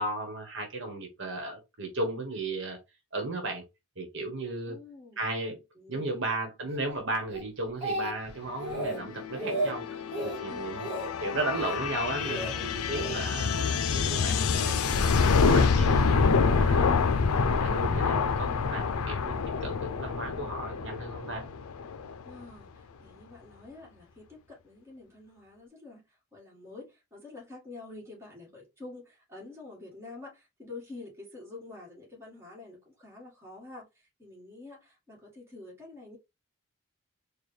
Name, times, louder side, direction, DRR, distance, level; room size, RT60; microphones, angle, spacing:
voice 1, 0.0-2.8 3.1-3.6 4.0-4.8 5.2-5.6 5.9-10.9 11.2-13.5 13.9-16.8 17.4-19.3 19.6-21.4, right 2 dB, 55° right, 3 dB, 1.2 m, -35 dB
voice 2, 4.7-5.3 5.7-6.2 10.5-11.2 22.2-36.2, left 3 dB, 10° right, -2 dB, 1.7 m, -47 dB
Speech, 7.3-8.3 8.6-9.0 9.3-9.7 10.1-10.4 10.8-11.1 11.5-11.8 12.2-12.5 12.9-13.8 14.5-14.8, right 1 dB, 30° right, 1.5 m, -34 dB
sound 1, 8.9-22.4, left 5 dB, 75° left, 0.5 m, -27 dB
4.5 x 2.3 x 3.2 m, 0.23 s
head